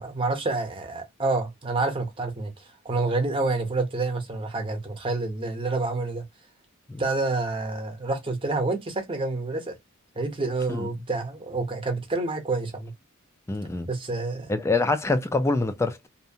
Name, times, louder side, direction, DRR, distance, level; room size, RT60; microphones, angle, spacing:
voice 1, 0.0-2.5 2.8-6.2 7.0-9.8 10.1-12.9 13.9-14.5, right 3 dB, 25° right, 0.8 m, -28 dB
voice 2, 13.5-13.9 14.5-16.1, left 3 dB, 10° left, 0.3 m, -25 dB
2.7 x 2.1 x 2.6 m
head